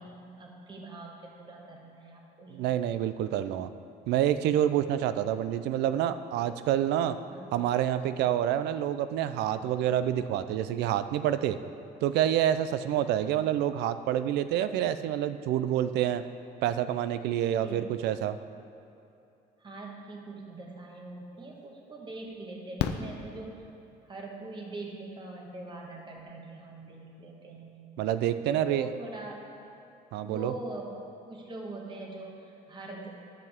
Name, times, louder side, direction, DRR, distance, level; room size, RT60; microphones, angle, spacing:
voice 1, 0.0-2.6 7.3-7.6 17.6-17.9 19.6-23.6 24.1-27.7 28.4-29.4 30.2-31.0 31.3-33.2, right 2 dB, 25° right, -1 dB, 1.4 m, -42 dB
voice 2, 2.5-3.7 4.1-7.2 7.5-11.6 12.0-16.2 16.6-18.4 28.0-28.9 30.1-30.5, right 11 dB, 80° right, 12 dB, 0.4 m, -27 dB
Fireworks, 21.1-21.2 22.8-24.1 25.9-26.0 26.2-26.3, left 9 dB, 85° left, 0.5 m, -34 dB
11.0 x 7.6 x 3.6 m, 2.6 s
cardioid pair, 110°, 17 cm